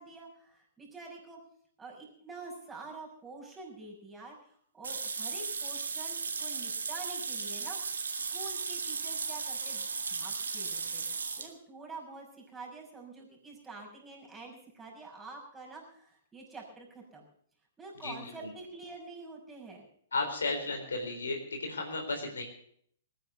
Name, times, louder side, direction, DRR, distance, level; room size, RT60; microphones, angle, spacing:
voice 1, 0.0-1.4 1.8-8.0 8.3-17.2 17.8-19.9, right 3 dB, 10° right, -2 dB, 6.0 m, -47 dB
sound 1, 4.8-11.5, right 5 dB, 80° right, 2.0 m, -36 dB
voice 2, 20.1-22.4, left 3 dB, 80° left, 2 dB, 3.9 m, -34 dB
20.0 x 9.7 x 6.8 m, 0.64 s
figure-of-eight pair, 115°, 0 cm